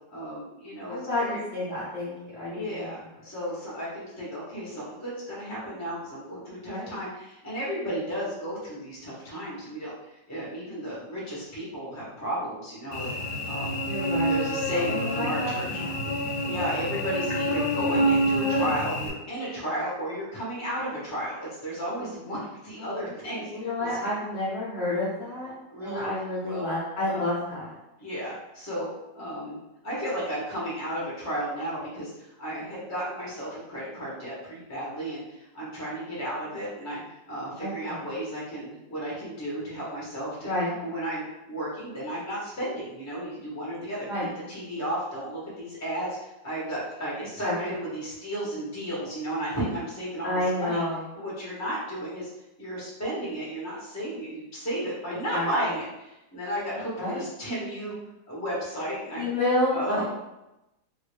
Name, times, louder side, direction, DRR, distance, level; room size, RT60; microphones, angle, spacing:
voice 1, 0.1-1.4 2.5-9.9 10.3-13.1 13.4-13.7 14.0-15.8 16.4-24.1 25.7-26.1 26.4-26.6 27.1-27.3 28.0-28.9 29.1-29.6 29.8-40.5 40.8-44.1 44.5-50.8 51.1-52.3 52.6-58.0 58.3-59.3 59.7-60.0, equal, 15° left, -6 dB, 0.8 m, -33 dB
voice 2, 0.9-2.9 6.6-7.0 13.9-14.4 14.9-16.1 22.8-22.9 23.3-25.5 25.8-27.7 37.6-38.0 40.4-40.8 44.1-44.3 47.4-47.5 50.2-51.0 55.3-55.5 57.0-57.2 59.2-60.0, left 1 dB, 50° left, -9 dB, 0.8 m, -30 dB
Cricket / Buzz, 12.9-19.1, equal, 75° left, 1.2 m, -27 dB
3.0 x 2.6 x 3.2 m, 0.93 s
omnidirectional pair, 1.9 m